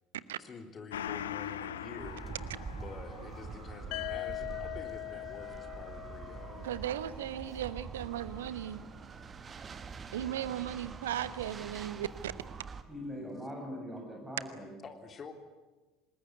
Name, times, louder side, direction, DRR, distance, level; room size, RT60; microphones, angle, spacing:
voice 1, 0.4-2.3 2.7-6.6 14.8-15.3, left 4 dB, 30° left, 6 dB, 3.4 m, -48 dB
Gong, 0.9-9.9 10.2-10.3, left 9 dB, 70° left, 0.9 m, -46 dB
sound 1, 2.0-12.8, right 5 dB, 30° right, 1.5 m, -45 dB
sound 2, 3.9-7.8, left 17 dB, 55° left, 1.2 m, -42 dB
voice 2, 6.6-8.8 10.1-12.3, right 11 dB, 70° right, 16 dB, 1.1 m, -36 dB
voice 3, 12.9-14.7, equal, 5° right, 0 dB, 7.0 m, -42 dB
26.5 x 20.5 x 9.5 m, 1.2 s
figure-of-eight pair, 65°, 0 cm